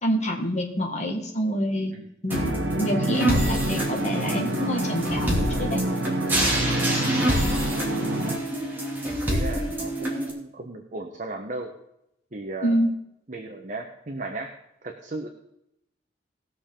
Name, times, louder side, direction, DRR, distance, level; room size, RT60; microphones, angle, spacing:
voice 1, 0.0-1.9 2.2-2.5 2.8-5.8 12.6-12.9, equal, 40° left, 1 dB, 1.9 m, -26 dB
sound 1, 2.3-10.3, right 1 dB, 10° right, 2.7 m, -27 dB
sound 2, 2.3-8.4, right 1 dB, 65° right, 1.1 m, -28 dB
voice 2, 7.0-7.7 9.1-11.7 12.3-12.8 13.3-14.5 14.8-15.3, right 2 dB, 45° right, 3 dB, 1.1 m, -36 dB
19.0 x 6.9 x 3.7 m, 0.80 s
head